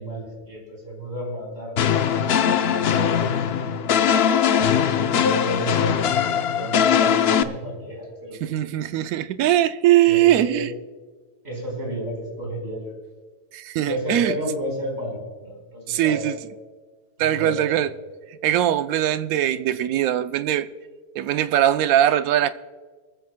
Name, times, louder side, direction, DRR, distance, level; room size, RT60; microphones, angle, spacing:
voice 1, 0.0-3.8 4.9-8.4 10.1-10.6 11.4-12.9 13.8-16.3 17.2-17.9, equal, 45° right, 4.9 m, -33 dB
sound 1, 1.8-7.4, left 8 dB, 60° left, 0.7 m, -20 dB
voice 2, 8.4-10.7 13.5-14.4 15.9-16.4 17.2-17.9 18.4-20.7 21.2-22.5, right 12 dB, 75° right, 1.0 m, -21 dB
23.5 x 14.5 x 2.2 m
omnidirectional pair, 1.6 m